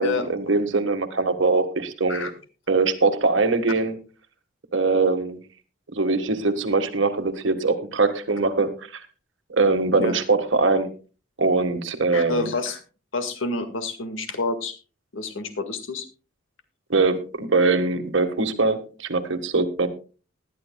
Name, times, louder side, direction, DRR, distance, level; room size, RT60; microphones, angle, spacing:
voice 1, 0.0-2.3 2.7-4.0 4.7-5.4 5.9-9.0 9.5-10.9 11.4-12.5 16.9-19.9, right 3 dB, 70° right, 8 dB, 1.6 m, -22 dB
voice 2, 12.1-12.8 13.1-14.8 15.1-16.1, left 3 dB, 80° left, 8 dB, 1.9 m, -28 dB
19.5 x 11.5 x 2.3 m, 0.34 s
head